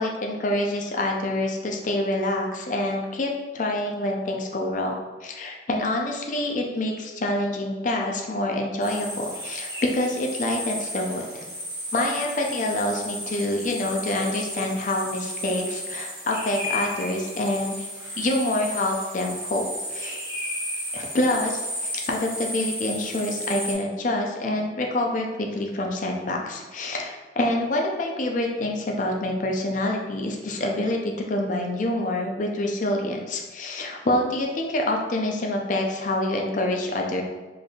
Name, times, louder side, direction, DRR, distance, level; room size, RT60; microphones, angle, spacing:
voice 1, 0.0-5.0 5.2-11.4 11.9-17.9 18.2-20.2 20.9-37.2, left 1 dB, 45° left, 1 dB, 0.5 m, -26 dB
sound 1, 8.8-23.7, equal, 20° right, 1.1 m, -34 dB
4.0 x 3.4 x 2.3 m, 1.3 s
head